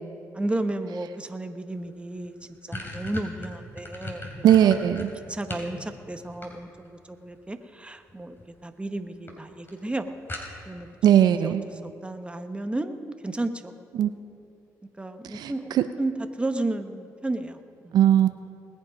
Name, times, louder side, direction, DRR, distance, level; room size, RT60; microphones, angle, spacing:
voice 1, 0.3-2.4 2.7-4.8 5.3-8.4 8.6-10.1 10.7-10.9 11.4-11.5 11.8-13.7 15.0-16.1 16.4-17.6 17.8-17.9, right 2 dB, 15° right, 8 dB, 1.1 m, -32 dB
sound 1, 1.8-1.9 2.2-5.7 6.1-7.0 8.1-8.5 8.8-8.9 9.3-9.4 9.7-9.8 10.3-10.8, left 1 dB, 30° left, 3.2 m, -37 dB
voice 2, 4.4-5.1 11.0-11.6 13.9-14.1 15.3-15.8 17.9-18.3, right 10 dB, 75° right, 10 dB, 0.5 m, -19 dB
20.0 x 7.9 x 5.1 m, 2.5 s
supercardioid pair, 55°, 7 cm